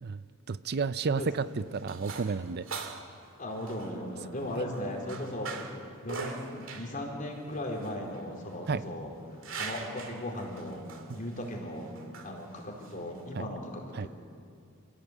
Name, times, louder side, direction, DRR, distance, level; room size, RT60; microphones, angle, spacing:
voice 1, 0.0-2.9 8.7-8.8 11.1-11.2 13.3-13.5 13.9-14.1, right 4 dB, 50° right, 14 dB, 0.5 m, -32 dB
sound 1, 1.2-13.4, right 4 dB, 65° right, 2.4 m, -44 dB
voice 2, 3.4-5.6 6.0-9.1 9.5-10.8 11.1-14.1, left 1 dB, 40° left, 0 dB, 4.5 m, -37 dB
27.5 x 16.0 x 8.2 m, 2.4 s
head